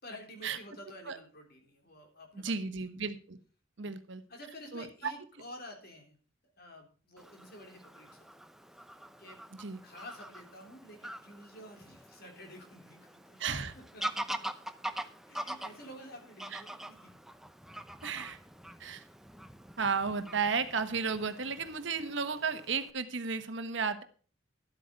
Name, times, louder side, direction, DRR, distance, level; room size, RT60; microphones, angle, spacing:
voice 1, 0.0-2.6 3.8-4.0 4.3-6.2 6.4-8.1 8.3-8.5 9.2-9.4 9.8-13.4 13.7-14.2 15.0-17.1, left 1 dB, 50° left, 3 dB, 3.4 m, -50 dB
voice 2, 2.4-3.4 3.8-4.2 4.7-4.8 9.6-9.8 13.4-13.7 16.5-16.6 18.0-18.4 18.8-19.0 19.8-24.0, right 5 dB, 65° right, 10 dB, 1.2 m, -33 dB
Fowl / Bird vocalization bird call bird song, 7.2-22.9, right 1 dB, ahead, 0.6 m, -44 dB
12.0 x 8.5 x 5.2 m, 0.40 s
head